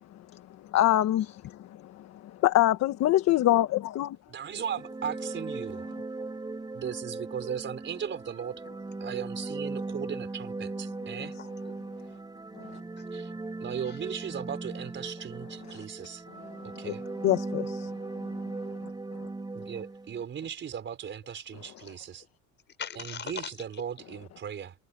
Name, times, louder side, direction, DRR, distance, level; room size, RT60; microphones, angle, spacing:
voice 1, 0.7-1.7 2.4-4.2 16.8-16.9 17.2-17.9, left 14 dB, 60° left, 1.4 m, -24 dB
voice 2, 4.3-5.9 6.7-8.6 9.0-11.3 13.1-13.3 13.6-16.2 16.8-17.0 19.5-22.2 23.3-24.7, right 8 dB, 40° right, 4.7 m, -37 dB
sound 1, 4.5-20.2, right 3 dB, 15° right, 5.3 m, -38 dB
voice 3, 11.4-11.9 12.7-13.2 13.6-14.2 21.8-22.0 22.7-23.8, left 7 dB, 35° left, 6.2 m, -43 dB
cardioid pair, 140°, 30 cm